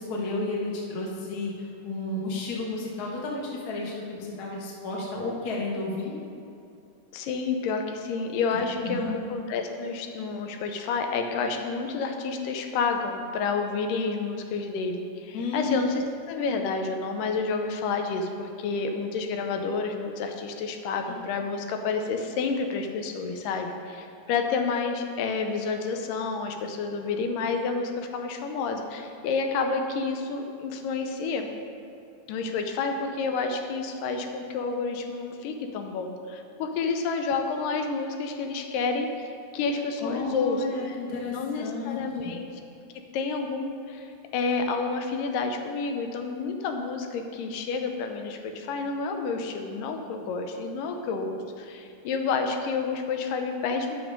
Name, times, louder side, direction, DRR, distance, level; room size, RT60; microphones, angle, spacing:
voice 1, 0.0-6.1 8.5-9.2 15.3-15.9 40.0-42.3, left 2 dB, 45° left, -3 dB, 1.3 m, -32 dB
voice 2, 7.1-9.0 9.3-31.5 32.3-41.0 41.3-42.5 43.1-54.0, left 4 dB, 85° left, 5 dB, 2.4 m, -29 dB
10.5 x 6.0 x 5.2 m, 2.6 s
omnidirectional pair, 3.8 m